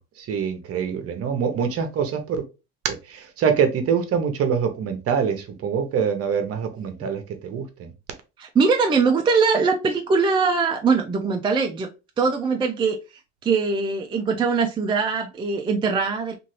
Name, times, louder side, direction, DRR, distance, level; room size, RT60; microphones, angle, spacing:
voice 1, 0.2-2.4 2.9-7.9, right 7 dB, 45° right, 0.8 m, -25 dB
voice 2, 8.4-11.9 12.2-13.0 13.4-16.3, right 4 dB, 15° right, 0.4 m, -21 dB
2.6 x 2.6 x 3.1 m
supercardioid pair, 100°, 33 cm